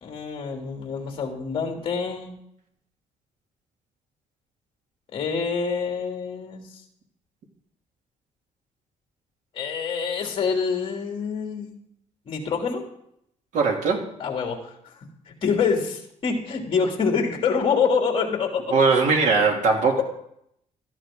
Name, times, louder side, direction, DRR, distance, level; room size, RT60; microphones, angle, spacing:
voice 1, 0.0-2.4 5.1-6.8 9.5-11.7 12.3-12.9 14.2-14.7 15.3-18.7, left 5 dB, 40° left, 1 dB, 3.0 m, -26 dB
voice 2, 13.5-14.1 18.7-20.0, right 4 dB, 70° right, 1 dB, 3.0 m, -20 dB
17.5 x 13.5 x 3.9 m, 0.73 s
cardioid pair, 170°, 13 cm